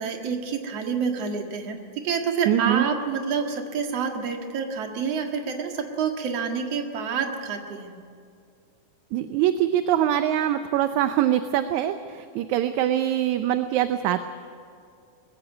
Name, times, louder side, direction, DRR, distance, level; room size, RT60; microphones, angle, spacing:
voice 1, 0.0-7.9, right 6 dB, 60° right, 4 dB, 2.8 m, -28 dB
voice 2, 2.5-2.8 9.1-14.2, right 11 dB, 80° right, 9 dB, 2.1 m, -23 dB
21.0 x 16.0 x 9.5 m, 2.3 s
omnidirectional pair, 3.4 m